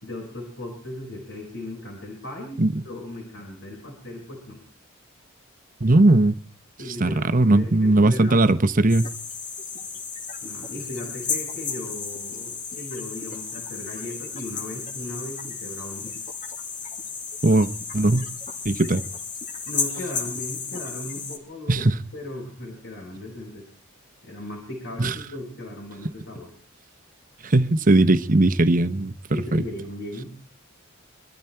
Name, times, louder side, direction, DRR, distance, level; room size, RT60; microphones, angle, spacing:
voice 1, 0.0-4.6 6.8-8.5 10.4-16.2 19.7-21.9 22.1-23.7 24.2-26.5 29.3-30.3, left 1 dB, 65° left, 5.0 m, -37 dB
voice 2, 5.8-6.3 7.0-9.0 17.4-17.7 17.9-18.3 18.6-19.0 21.7-22.0 25.0-25.1 27.4-29.1 29.5-29.6, right 2 dB, 40° right, 1.0 m, -18 dB
sound 1, 8.9-21.4, left 5 dB, 40° left, 2.4 m, -33 dB
23.5 x 13.0 x 4.5 m
head